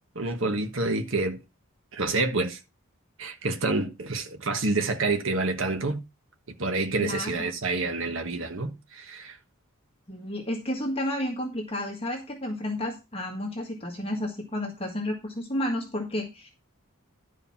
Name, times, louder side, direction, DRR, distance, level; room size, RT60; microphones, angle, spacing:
voice 1, 0.1-1.4 1.9-2.6 3.2-6.0 6.6-9.4, right 3 dB, 60° right, 1.4 m, -28 dB
voice 2, 7.0-7.5 10.1-16.5, left 1 dB, 25° left, 1.8 m, -31 dB
11.5 x 5.1 x 5.7 m
head